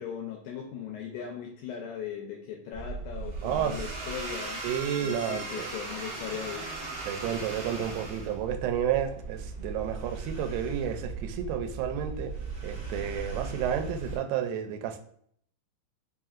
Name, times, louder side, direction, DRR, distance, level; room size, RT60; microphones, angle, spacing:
voice 1, 0.0-4.6 5.0-6.7, left 8 dB, 85° left, 0 dB, 1.8 m, -38 dB
sound 1, 2.7-14.2, right 3 dB, 50° right, 1.1 m, -38 dB
voice 2, 3.4-4.0 4.6-5.7 7.1-12.4 12.6-15.0, right 9 dB, 90° right, 6 dB, 2.3 m, -31 dB
5.2 x 2.8 x 2.4 m, 0.64 s
omnidirectional pair, 4.0 m